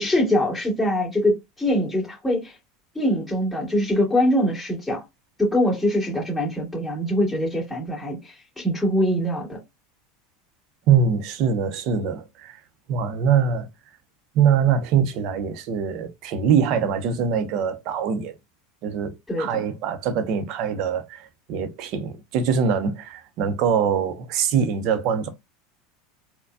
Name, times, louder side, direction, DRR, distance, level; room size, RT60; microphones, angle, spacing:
voice 1, 0.0-2.5 3.0-5.0 5.4-8.2 8.6-9.6 19.3-19.6, equal, 5° left, 2.2 m, -23 dB
voice 2, 10.9-12.6 12.9-13.7 14.3-18.3 18.8-25.3, right 7 dB, 55° right, 0.7 m, -23 dB
4.0 x 2.2 x 2.5 m
hypercardioid pair, 85°, 0 cm